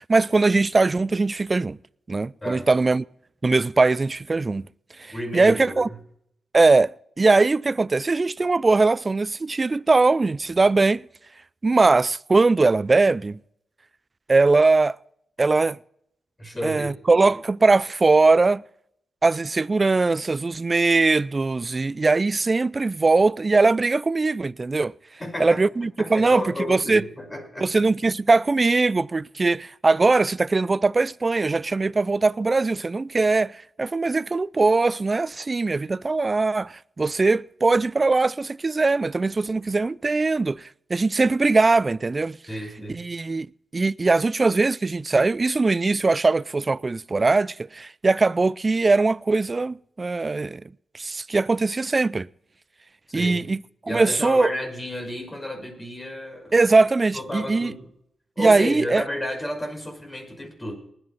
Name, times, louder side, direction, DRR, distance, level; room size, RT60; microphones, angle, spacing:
voice 1, 0.0-1.8 2.1-3.0 3.4-4.7 5.0-5.9 6.5-6.9 7.2-11.0 11.6-13.4 14.3-15.0 15.4-15.8 16.6-18.6 19.2-24.9 25.4-27.0 27.6-42.4 42.9-43.5 43.7-50.6 50.9-52.3 53.1-53.6 53.9-54.5 56.5-57.7 58.4-59.0, right 3 dB, 35° right, 0.4 m, -21 dB
voice 2, 5.1-6.0 16.4-17.0 25.2-25.6 26.0-27.9 42.5-43.0 53.1-53.4 53.8-56.6 57.1-57.9 58.4-60.7, left 1 dB, 25° left, 5.9 m, -32 dB
19.5 x 10.0 x 4.1 m
supercardioid pair, 45°, 0 cm